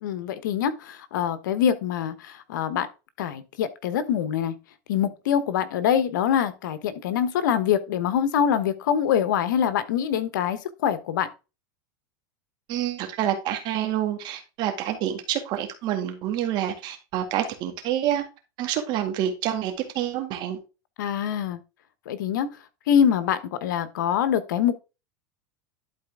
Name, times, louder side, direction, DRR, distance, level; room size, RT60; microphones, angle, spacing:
voice 1, 0.0-2.9 3.2-4.6 4.9-11.3 21.0-21.6 22.1-22.5 22.9-24.7, left 9 dB, 80° left, 1.0 m, -24 dB
voice 2, 12.7-18.2 18.6-20.6, right 11 dB, 45° right, 2.0 m, -27 dB
11.5 x 4.2 x 3.6 m
supercardioid pair, 130°, 10 cm